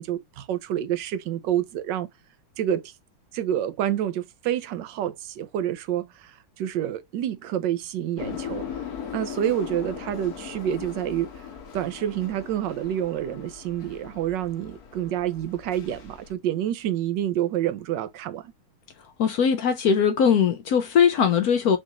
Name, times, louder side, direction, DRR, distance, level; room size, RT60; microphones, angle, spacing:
voice 1, 0.0-2.1 2.6-2.9 3.3-8.7 9.1-11.4 11.7-18.5, right 11 dB, 70° right, 1.2 m, -28 dB
sound 1, 8.2-16.3, left 8 dB, 55° left, 1.3 m, -39 dB
voice 2, 19.2-21.8, left 7 dB, 70° left, 0.9 m, -20 dB
6.4 x 2.5 x 2.9 m
omnidirectional pair, 2.2 m